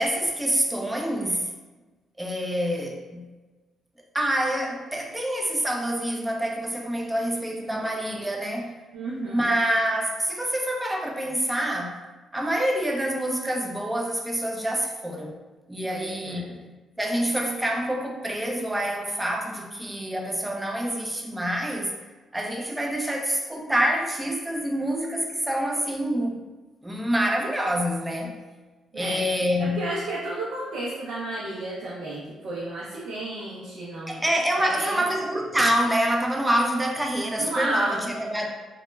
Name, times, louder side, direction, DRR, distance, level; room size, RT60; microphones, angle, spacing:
voice 1, 0.0-1.5 2.2-3.2 4.1-8.7 9.2-12.0 12.3-15.4 15.7-16.5 17.0-21.9 22.3-26.4 26.8-28.3 28.9-29.8 34.1-38.5, equal, 10° right, 0 dB, 0.4 m, -26 dB
voice 2, 8.9-9.5 15.8-16.6 28.9-29.2 29.8-34.2 34.6-35.0 37.3-38.1, right 2 dB, 70° right, -6 dB, 0.5 m, -32 dB
2.1 x 2.1 x 3.1 m, 1.2 s
cardioid pair, 90°, 0 cm